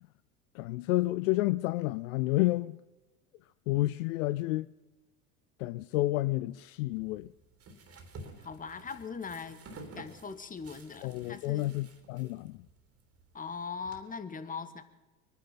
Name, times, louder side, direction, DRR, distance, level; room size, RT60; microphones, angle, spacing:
voice 1, 0.5-2.8 3.7-4.7 5.6-7.3 11.0-12.6, left 18 dB, 65° left, 0.5 m, -30 dB
sound 1, 6.9-14.0, right 2 dB, 35° right, 3.1 m, -51 dB
voice 2, 8.4-9.6 9.9-11.7 13.3-14.8, left 5 dB, 20° left, 1.5 m, -40 dB
23.5 x 10.0 x 5.8 m
hypercardioid pair, 90°, 42 cm